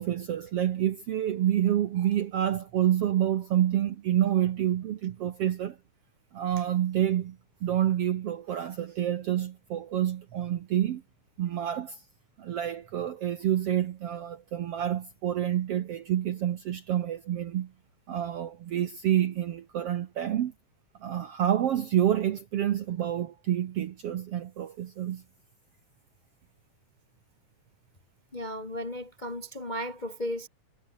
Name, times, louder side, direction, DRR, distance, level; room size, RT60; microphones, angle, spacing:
voice 1, 0.0-5.8 6.3-11.0 11.4-12.0 12.4-17.7 18.1-20.5 21.0-25.2, right 11 dB, 65° right, 1.5 m, -28 dB
voice 2, 28.3-30.5, equal, 45° left, 0.5 m, -35 dB
omnidirectional pair, 3.9 m